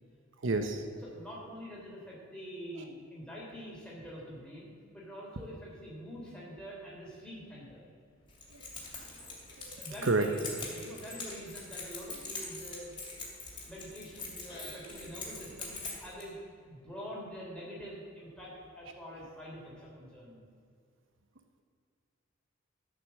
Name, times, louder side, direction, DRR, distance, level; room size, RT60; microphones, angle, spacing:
voice 1, 0.4-1.1 2.8-2.9 8.5-8.6 9.7-9.8 10.0-10.3, right 3 dB, 65° right, 7 dB, 0.8 m, -30 dB
voice 2, 1.0-7.8 9.7-13.3 13.6-20.4, equal, 5° left, -5 dB, 3.4 m, -45 dB
Keys jangling, 8.3-16.2, left 3 dB, 25° left, 2.8 m, -43 dB
13.5 x 6.1 x 7.5 m, 2.3 s
head